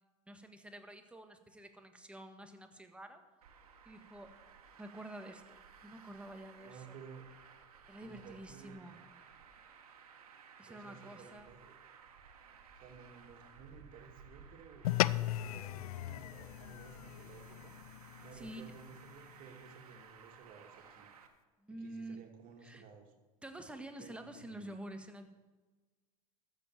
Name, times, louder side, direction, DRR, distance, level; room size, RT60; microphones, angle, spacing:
voice 1, 0.3-3.2 3.8-4.3 4.8-6.8 7.9-9.0 10.6-11.5 18.3-18.7 21.6-22.2 22.6-22.8 23.4-25.3, right 1 dB, 5° right, 6 dB, 1.6 m, -48 dB
Traffic noise roadway noise, 3.4-21.3, right 6 dB, 75° right, 1.5 m, -58 dB
voice 2, 6.6-7.3 8.0-9.0 10.7-11.7 12.8-14.9 15.4-17.8 18.2-21.1 21.8-23.1 24.0-24.7, right 6 dB, 50° right, 3 dB, 2.5 m, -55 dB
sound 1, 14.8-19.5, left 15 dB, 75° left, 0.4 m, -37 dB
13.5 x 7.3 x 7.5 m, 1.3 s
hypercardioid pair, 80°, 19 cm